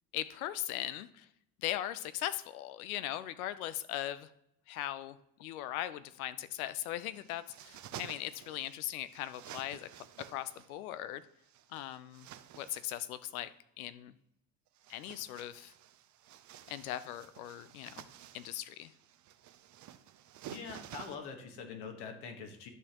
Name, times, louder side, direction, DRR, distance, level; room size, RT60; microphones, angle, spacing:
voice 1, 0.1-1.3 1.6-4.3 4.7-9.9 10.3-11.2 11.7-12.3 12.6-13.5 13.8-14.1 14.9-15.7 16.7-18.1 18.3-18.9, left 13 dB, 90° left, 15 dB, 0.6 m, -39 dB
sound 1, 7.1-8.8 9.1-10.7 11.4-13.0 14.7-21.2, right 11 dB, 45° right, 0.6 m, -51 dB
voice 2, 20.5-22.7, left 5 dB, 70° left, 5 dB, 1.5 m, -44 dB
11.0 x 6.6 x 2.9 m, 0.78 s
hypercardioid pair, 75°, 41 cm